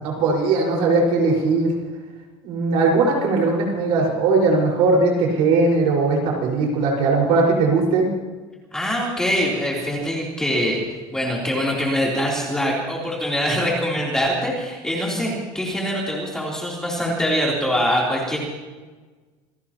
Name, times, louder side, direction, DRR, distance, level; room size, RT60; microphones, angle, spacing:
voice 1, 0.0-1.7 2.4-8.1, right 3 dB, 55° right, -1 dB, 4.9 m, -19 dB
voice 2, 8.7-10.8 11.1-18.4, equal, 5° left, -4 dB, 3.3 m, -23 dB
27.5 x 17.5 x 2.9 m, 1.3 s
cardioid pair, 180°, 12 cm